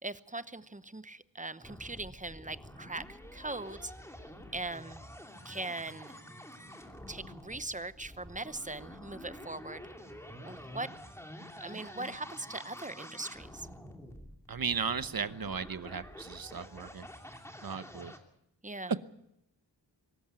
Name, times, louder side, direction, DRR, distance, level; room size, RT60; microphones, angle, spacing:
voice 1, 0.0-3.9 4.5-5.0 5.4-6.2 7.1-9.8 10.4-10.9 11.5-13.7 18.6-18.9, right 2 dB, 15° right, 14 dB, 0.9 m, -40 dB
sound 1, 1.6-18.2, equal, 5° left, 2.7 m, -48 dB
voice 2, 14.5-17.1 17.6-18.1, right 6 dB, 50° right, 13 dB, 1.0 m, -36 dB
24.0 x 13.5 x 9.0 m, 0.79 s
wide cardioid pair, 90°, 45 cm